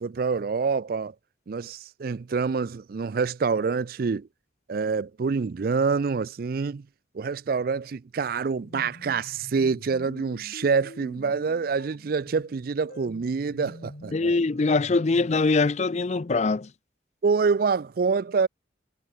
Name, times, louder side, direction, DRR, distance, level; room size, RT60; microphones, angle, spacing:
voice 1, 0.0-1.1 1.5-4.3 4.7-6.9 7.1-14.4 17.2-18.5, right 5 dB, 50° right, 0.4 m, -26 dB
sound 1, 8.5-15.4, left 1 dB, 55° left, 3.9 m, -46 dB
voice 2, 14.1-16.7, left 3 dB, 35° left, 0.5 m, -23 dB
head